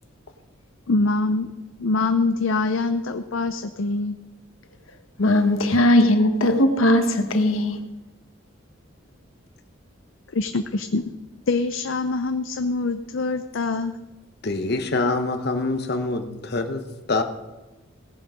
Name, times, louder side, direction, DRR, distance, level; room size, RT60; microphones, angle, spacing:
voice 1, 0.9-1.5 1.8-4.2 10.3-11.0 11.5-14.0, left 3 dB, 70° left, 0.6 m, -24 dB
voice 2, 5.2-7.8, left 1 dB, 90° left, 1.2 m, -18 dB
voice 3, 14.4-17.2, left 2 dB, 55° left, 1.0 m, -25 dB
18.0 x 7.5 x 5.0 m
head